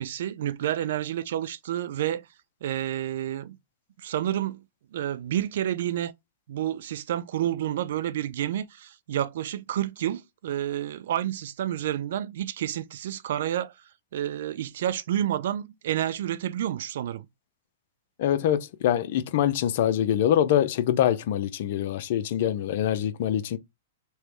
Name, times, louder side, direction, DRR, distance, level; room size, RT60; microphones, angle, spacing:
voice 1, 0.0-2.3 2.6-3.6 4.0-4.6 4.9-6.1 6.5-13.7 14.1-17.3, right 11 dB, 65° right, 0.5 m, -29 dB
voice 2, 18.2-23.6, left 10 dB, 60° left, 0.6 m, -24 dB
3.2 x 3.0 x 4.6 m
hypercardioid pair, 130°, 0 cm